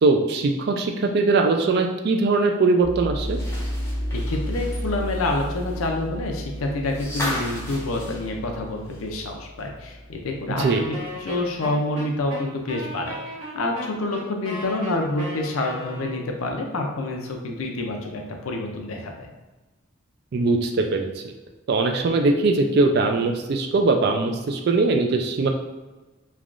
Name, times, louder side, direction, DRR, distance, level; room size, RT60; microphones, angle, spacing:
voice 1, 0.0-3.4 10.6-10.8 20.3-21.1 21.7-25.5, right 3 dB, 50° right, 4 dB, 0.3 m, -21 dB
sound 1, 2.8-11.5, equal, 25° right, 0.7 m, -33 dB
sound 2, 3.2-9.3 9.6-9.7 11.1-11.2, left 1 dB, 15° left, 0.6 m, -36 dB
voice 2, 4.1-13.2 13.5-19.3, left 2 dB, 80° left, 2 dB, 0.5 m, -27 dB
Wind instrument woodwind instrument, 10.6-16.4, equal, 80° right, 0.9 m, -36 dB
3.3 x 2.3 x 2.5 m, 1.2 s
head